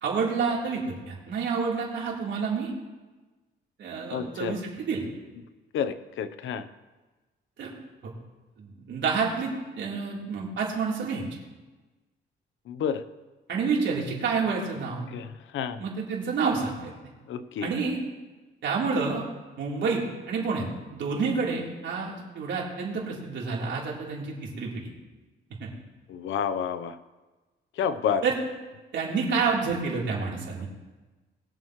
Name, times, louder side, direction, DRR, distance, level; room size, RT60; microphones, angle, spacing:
voice 1, 0.0-2.7 3.8-5.0 7.6-7.7 8.6-11.2 13.5-15.1 15.8-16.9 17.6-18.0 18.6-19.2 19.6-20.0 20.3-24.9 25.6-25.7 28.2-28.3 28.9-30.7, right 5 dB, 70° right, -3 dB, 3.7 m, -29 dB
voice 2, 4.1-4.6 5.7-6.7 12.7-13.0 15.1-15.8 17.3-17.7 26.1-27.0 27.8-28.2, left 7 dB, 75° left, 11 dB, 0.9 m, -29 dB
21.5 x 7.4 x 3.2 m, 1.2 s
cardioid pair, 90°, 20 cm